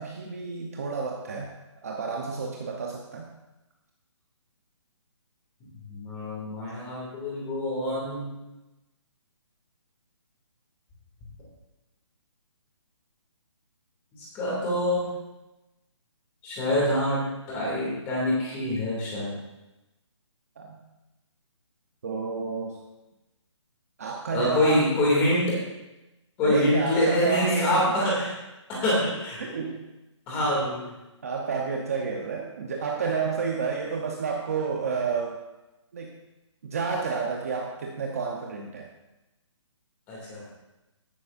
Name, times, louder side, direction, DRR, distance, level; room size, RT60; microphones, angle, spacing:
voice 1, 0.0-1.5 1.8-3.3 20.6-20.8 22.0-22.8 24.0-24.9 26.4-27.9 29.4-29.9 31.2-35.4 35.9-36.1 36.6-38.9, right 5 dB, 30° right, 0 dB, 0.9 m, -30 dB
voice 2, 5.9-8.3 14.1-15.1 16.4-19.4 24.3-25.6 26.4-28.3 28.7-29.4 30.3-30.9 40.1-40.4, left 1 dB, 10° left, -5 dB, 2.5 m, -25 dB
14.5 x 11.5 x 2.6 m, 1.0 s
hypercardioid pair, 175°, 16 cm